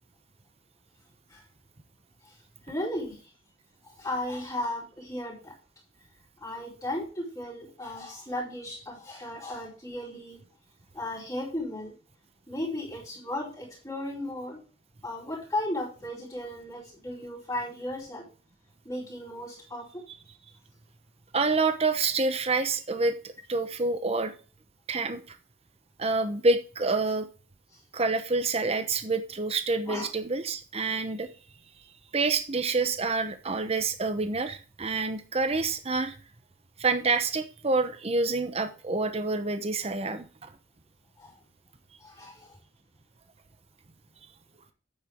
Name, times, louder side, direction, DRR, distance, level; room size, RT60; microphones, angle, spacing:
voice 1, 2.6-3.3 3.8-5.5 6.4-10.4 10.9-11.9 12.5-14.6 15.0-18.2 18.8-20.0 27.7-27.8 29.9-30.1 41.2-41.4 42.0-42.6, left 1 dB, 20° left, -5 dB, 4.1 m, -35 dB
voice 2, 21.3-23.1 23.5-24.3 24.9-25.4 26.0-27.3 27.9-31.3 32.1-36.2 36.8-40.5, right 3 dB, 30° right, 9 dB, 0.9 m, -27 dB
8.8 x 8.1 x 3.6 m, 0.36 s
head